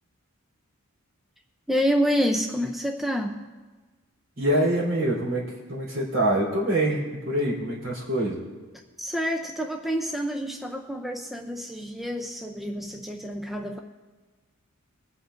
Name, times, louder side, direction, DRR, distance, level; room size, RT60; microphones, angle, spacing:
voice 1, 1.7-3.4 9.0-13.8, equal, ahead, 3 dB, 0.5 m, -28 dB
voice 2, 4.4-8.4, right 1 dB, 60° right, -6 dB, 3.6 m, -25 dB
24.0 x 8.2 x 2.6 m, 1.3 s
head